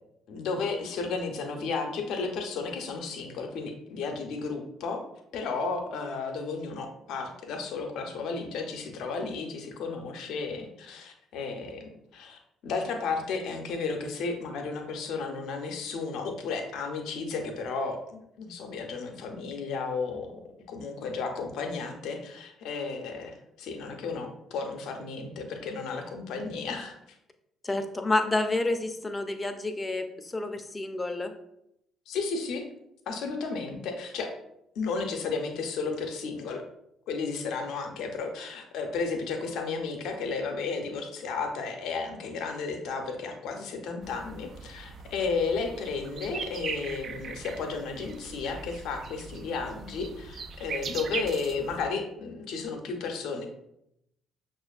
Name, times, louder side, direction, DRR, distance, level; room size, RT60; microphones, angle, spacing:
voice 1, 0.3-5.0 5.3-20.4 20.7-26.9 32.1-32.6 33.1-34.3 34.8-36.6 37.1-53.5, left 4 dB, 65° left, 4 dB, 0.6 m, -33 dB
voice 2, 27.6-31.3, left 2 dB, 25° left, 7 dB, 0.5 m, -29 dB
sound 1, 44.0-51.9, right 5 dB, 50° right, 0.3 m, -40 dB
6.1 x 2.5 x 2.4 m, 0.80 s
hypercardioid pair, 50°, 0 cm